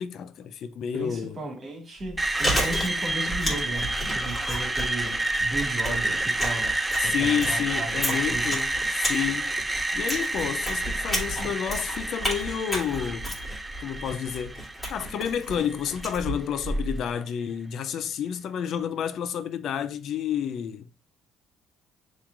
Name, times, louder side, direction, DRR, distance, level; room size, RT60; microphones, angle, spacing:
voice 1, 0.0-1.4 7.0-9.5 9.9-13.3 13.8-14.6 14.9-20.9, left 8 dB, 60° left, 0.4 m, -30 dB
voice 2, 0.9-8.5, right 2 dB, 40° right, 2.1 m, -35 dB
Chewing mastication, 2.0-17.1, equal, 10° left, 2.6 m, -33 dB
Screech, 2.2-16.1, right 2 dB, 10° right, 0.5 m, -29 dB
7.1 x 3.1 x 2.4 m
cardioid pair, 110°, 0 cm